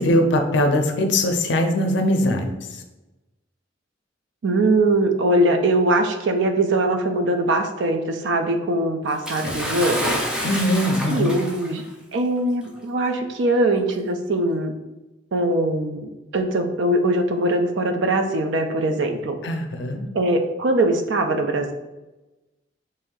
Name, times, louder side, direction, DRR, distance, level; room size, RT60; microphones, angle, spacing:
voice 1, 0.0-2.5 10.4-11.3 19.4-20.1, left 1 dB, 65° left, 5 dB, 0.5 m, -21 dB
voice 2, 4.4-10.2 11.1-11.8 12.1-14.7 15.3-19.4 20.1-21.7, right 1 dB, 70° right, 6 dB, 0.4 m, -21 dB
Bathtub (filling or washing) / Splash splatter, 9.2-11.8 12.8-12.9 13.9-14.0, equal, 5° right, 0.4 m, -28 dB
3.2 x 2.6 x 3.8 m, 1.0 s
head